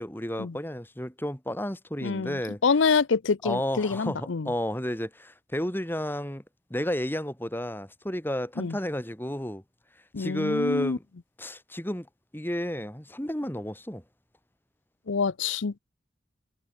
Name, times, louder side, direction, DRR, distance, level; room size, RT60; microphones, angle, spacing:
voice 1, 0.0-2.6 3.4-6.4 6.7-9.6 10.2-11.0 11.4-12.1 12.3-14.0, equal, 10° left, 3.0 m, -31 dB
voice 2, 2.0-4.5 8.6-8.8 10.1-11.0 15.1-15.8, left 5 dB, 85° left, 0.7 m, -26 dB
head